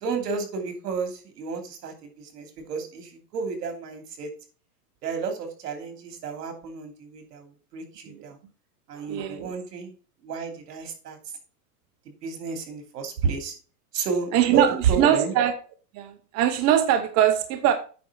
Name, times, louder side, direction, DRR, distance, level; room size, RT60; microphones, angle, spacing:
voice 1, 0.0-4.3 5.0-8.4 8.9-9.9 10.2-11.2 12.2-13.5 13.9-15.3, right 5 dB, 75° right, 6 dB, 3.0 m, -31 dB
voice 2, 8.9-9.5 14.3-15.5 15.9-17.7, right 10 dB, 35° right, 8 dB, 0.9 m, -22 dB
9.3 x 5.5 x 4.9 m, 0.38 s
supercardioid pair, 135°, 48 cm